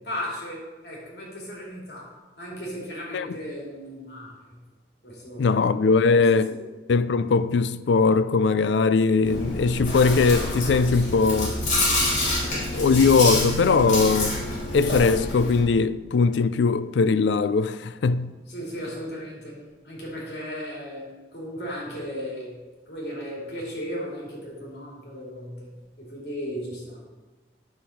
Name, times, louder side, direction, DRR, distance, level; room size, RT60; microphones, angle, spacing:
voice 1, 0.0-2.1 2.4-4.6 5.0-5.7 6.1-6.6 18.5-22.6 22.9-27.0, equal, 65° left, 2.6 m, -36 dB
voice 2, 5.4-6.5 6.9-11.6 12.5-14.4 14.7-18.3, left 4 dB, 80° left, 0.4 m, -20 dB
Chewing mastication, 9.2-15.6, left 1 dB, 40° left, 2.7 m, -27 dB
9.4 x 6.3 x 4.3 m
head